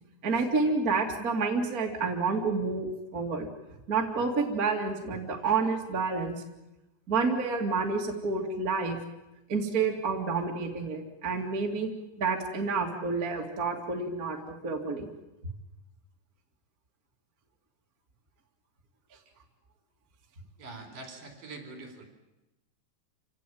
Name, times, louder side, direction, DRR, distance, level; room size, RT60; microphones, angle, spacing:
voice 1, 0.2-3.5 3.9-6.4 7.1-9.0 9.5-11.9 12.2-15.1, right 4 dB, 30° right, 1 dB, 2.0 m, -29 dB
voice 2, 20.6-22.1, right 3 dB, 50° right, 5 dB, 5.6 m, -44 dB
27.5 x 17.5 x 9.2 m, 0.97 s
omnidirectional pair, 4.9 m